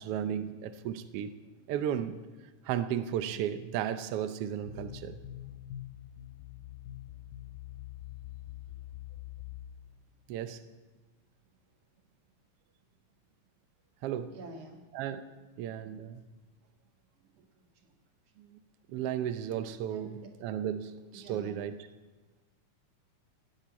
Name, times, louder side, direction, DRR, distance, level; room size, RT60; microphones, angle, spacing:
voice 1, 0.0-1.3 1.7-2.2 2.6-5.2 10.3-10.6 14.0-14.3 14.9-15.3 15.6-16.2 18.4-18.6 18.9-20.1 20.4-21.8, right 10 dB, 80° right, 11 dB, 1.3 m, -34 dB
sound 1, 4.7-10.2, left 13 dB, 90° left, 2.2 m, -45 dB
voice 2, 14.3-14.8 17.5-18.0 19.9-20.3 21.1-21.6, right 3 dB, 55° right, 2 dB, 3.0 m, -48 dB
16.5 x 8.6 x 8.6 m, 1.2 s
omnidirectional pair, 3.6 m